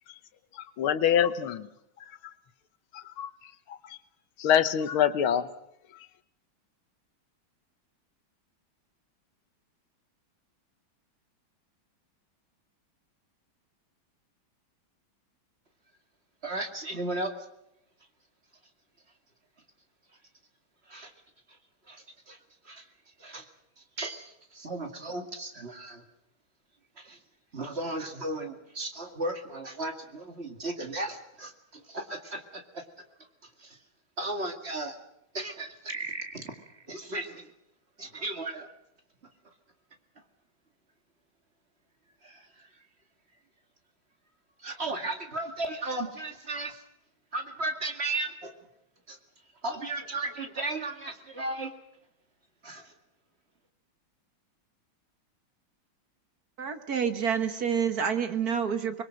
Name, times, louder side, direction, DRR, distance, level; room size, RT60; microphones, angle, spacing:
voice 1, 0.5-1.7 2.9-3.3 3.7-4.0 4.4-5.5, left 9 dB, 90° left, 12 dB, 1.9 m, -25 dB
voice 2, 16.4-17.3 20.9-21.1 21.9-22.4 22.7-22.8 23.2-23.5 24.0-26.0 27.0-27.2 27.5-32.8 33.6-33.8 34.2-35.0 35.3-36.5 36.9-37.5 38.0-38.7 42.2-42.7 44.6-46.8 47.3-48.5 49.1-49.2 49.6-51.7 52.6-52.9, right 2 dB, 30° right, 5 dB, 2.2 m, -35 dB
voice 3, 56.6-59.0, right 7 dB, 50° right, 8 dB, 1.7 m, -28 dB
25.0 x 21.5 x 6.4 m, 0.82 s
omnidirectional pair, 2.2 m